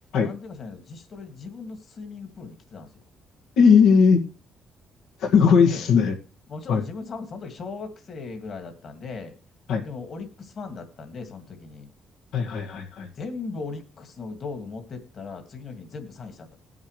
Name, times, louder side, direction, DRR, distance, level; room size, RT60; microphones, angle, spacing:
voice 1, 0.2-3.0 5.6-5.9 6.5-9.4 9.8-11.9 13.1-16.6, left 4 dB, 45° left, 5 dB, 2.1 m, -38 dB
voice 2, 3.6-4.2 5.2-6.1 6.7-6.8 9.7-9.8 12.3-13.1, left 6 dB, 80° left, 1 dB, 2.0 m, -18 dB
19.5 x 7.3 x 3.3 m, 0.32 s
cardioid pair, 130°, 0 cm